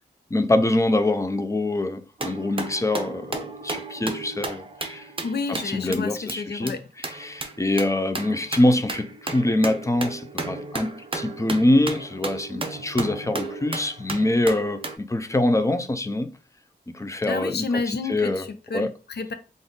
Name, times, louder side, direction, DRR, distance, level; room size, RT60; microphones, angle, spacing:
voice 1, 0.3-5.1 5.5-16.3 16.9-17.8 18.1-18.4 18.7-18.9, left 1 dB, 15° left, 0.4 m, -24 dB
sound 1, 2.2-6.0 6.3-6.4 6.7-6.8 7.0-15.0, right 3 dB, 30° right, 0.6 m, -34 dB
voice 2, 5.2-6.8 17.3-19.3, left 4 dB, 75° left, 0.6 m, -30 dB
3.8 x 2.5 x 3.6 m
wide cardioid pair, 95°, 17 cm